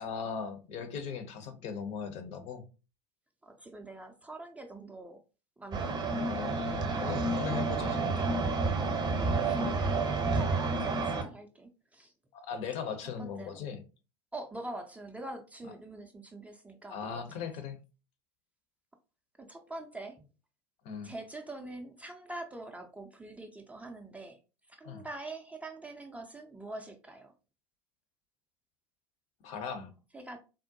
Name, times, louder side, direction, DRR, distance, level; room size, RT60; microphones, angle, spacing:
voice 1, 0.0-2.6 6.2-8.4 12.3-13.8 15.6-15.7 16.9-17.8 20.8-21.1 24.8-25.1 29.4-29.9, left 6 dB, 45° left, 0.7 m, -39 dB
voice 2, 3.4-5.2 5.6-6.3 9.4-12.1 13.2-13.7 14.3-17.2 19.4-20.3 21.0-24.4 24.8-27.3 30.1-30.4, right 2 dB, 10° right, 0.4 m, -44 dB
sound 1, 5.7-11.2, right 3 dB, 25° right, 0.8 m, -30 dB
3.6 x 2.1 x 2.7 m
figure-of-eight pair, 80°, 15 cm